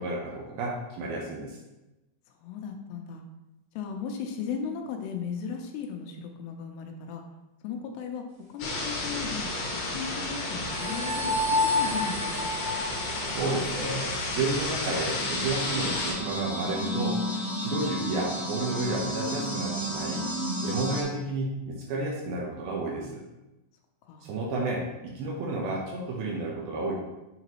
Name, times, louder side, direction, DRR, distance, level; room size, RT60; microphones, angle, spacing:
voice 1, 0.0-1.6 12.9-20.3 20.6-23.2 24.2-26.9, right 2 dB, 75° right, -2 dB, 2.5 m, -32 dB
voice 2, 2.4-3.2 3.8-7.2 7.6-8.2 8.5-9.5 9.9-12.5 17.7-17.9 24.0-24.3, left 6 dB, 80° left, 3 dB, 2.8 m, -36 dB
sound 1, 8.6-16.1, left 2 dB, 65° left, 2.9 m, -32 dB
sound 2, 10.6-13.8 15.0-21.0, equal, 40° right, 1.3 m, -31 dB
8.1 x 3.9 x 3.0 m, 1.0 s
omnidirectional pair, 4.9 m